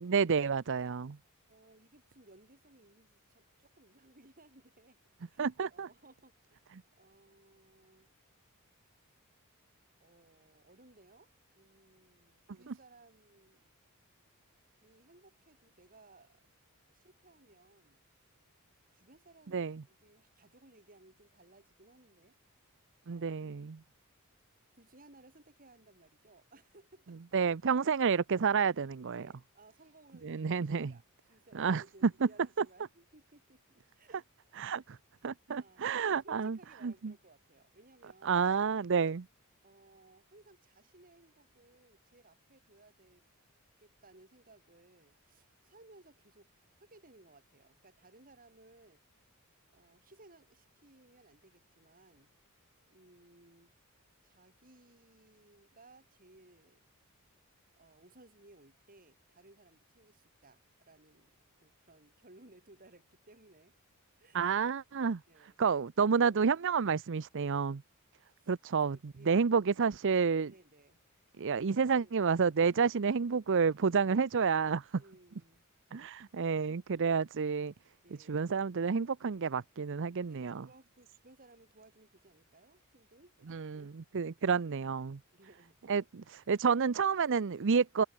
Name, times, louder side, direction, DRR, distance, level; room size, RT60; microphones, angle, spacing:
voice 1, 0.0-1.2 5.4-5.9 19.5-19.8 23.1-23.8 27.3-29.2 30.2-30.9 31.5-31.8 34.6-35.0 35.2-36.6 36.8-37.1 38.2-39.3 64.3-65.2 65.6-67.8 68.5-69.0 69.3-70.5 71.4-74.9 75.9-77.7 78.3-80.7 83.5-83.8 84.1-85.2 85.9-88.0, right 5 dB, 55° right, 0.6 m, -30 dB
voice 2, 1.5-5.0 5.3-6.6 7.0-8.1 10.0-13.6 14.8-16.4 16.9-18.0 18.9-22.4 23.1-23.4 23.7-23.8 24.7-27.5 29.2-34.3 35.6-38.5 39.6-43.2 43.8-49.0 49.7-52.3 52.9-53.7 54.2-56.8 57.8-61.3 61.6-63.7 64.2-64.5 65.3-65.6 68.3-69.5 70.5-71.0 71.7-72.1 75.0-75.6 78.0-78.4 80.3-83.9 85.3-85.8, right 2 dB, 40° right, 7.8 m, -61 dB
head